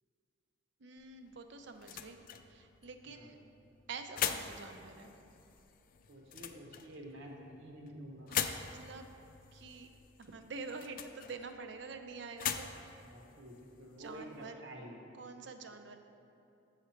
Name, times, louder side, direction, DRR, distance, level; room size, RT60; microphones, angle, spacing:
voice 1, 0.8-2.2 2.5-3.4 3.9-5.1 8.3-8.5 8.7-9.0 9.5-9.9 10.2-12.8 14.0-14.6 15.1-16.0, right 4 dB, 60° right, 7 dB, 0.5 m, -46 dB
sound 1, 1.0-14.5, left 9 dB, 45° left, 0.3 m, -43 dB
voice 2, 6.1-8.3 13.0-15.0, equal, 80° right, 0 dB, 1.1 m, -49 dB
7.1 x 6.6 x 4.4 m, 2.9 s
head